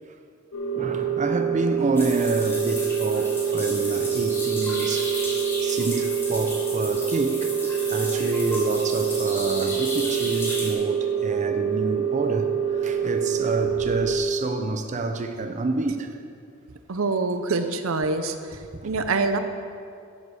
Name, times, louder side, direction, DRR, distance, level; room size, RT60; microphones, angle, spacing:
sound 1, 0.5-14.1, right 8 dB, 75° left, 1.5 m, -26 dB
voice 1, 0.7-5.2 5.6-16.2 18.7-18.9, right 2 dB, 35° right, 0.6 m, -28 dB
sound 2, 2.0-10.7, left 1 dB, 10° left, 2.2 m, -34 dB
voice 2, 16.9-19.4, right 3 dB, 80° right, 0.7 m, -25 dB
12.5 x 7.9 x 4.9 m
head